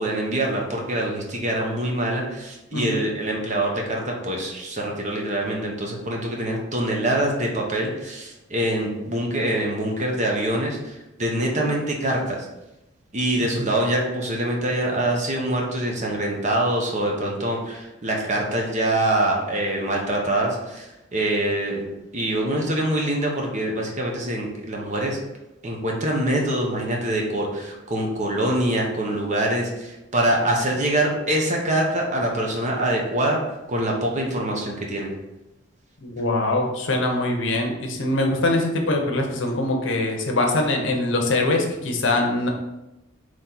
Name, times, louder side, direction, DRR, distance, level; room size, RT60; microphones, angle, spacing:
voice 1, 0.0-12.5 13.1-21.8 22.1-25.2 25.6-33.4 33.7-35.1, right 1 dB, 40° right, 0 dB, 0.9 m, -24 dB
voice 2, 36.0-42.5, left 2 dB, 70° left, 2 dB, 0.8 m, -23 dB
4.3 x 3.2 x 3.8 m, 0.94 s
head